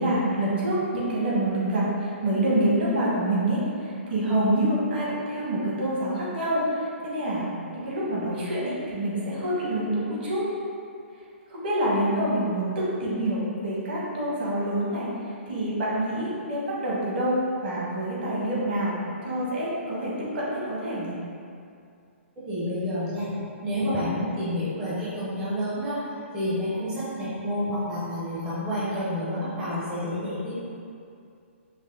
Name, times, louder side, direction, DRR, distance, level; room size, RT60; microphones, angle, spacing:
voice 1, 0.0-10.4 11.5-15.1 15.5-21.1, right 1 dB, 50° right, -6 dB, 1.3 m, -26 dB
voice 2, 22.5-23.3 23.6-26.0 26.3-30.6, left 1 dB, 10° right, -12 dB, 0.6 m, -29 dB
5.4 x 2.0 x 3.7 m, 2.4 s
hypercardioid pair, 170°, 7 cm